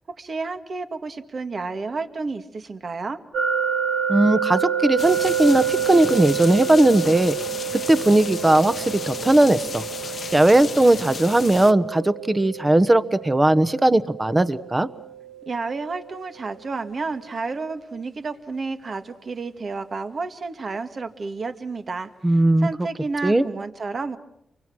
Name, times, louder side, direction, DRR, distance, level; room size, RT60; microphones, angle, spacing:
voice 1, 0.2-3.2 15.5-24.2, right 4 dB, 50° right, 8 dB, 1.8 m, -31 dB
sound 1, 3.3-16.2, right 8 dB, 80° right, 3.2 m, -29 dB
voice 2, 4.1-7.3 7.9-9.8 10.3-14.9 22.2-22.7 23.2-23.4, right 1 dB, 20° right, 14 dB, 1.1 m, -18 dB
sound 2, 5.0-11.7, left 5 dB, 60° left, 1.0 m, -34 dB
30.0 x 24.0 x 6.2 m, 0.78 s
cardioid pair, 80°, 0 cm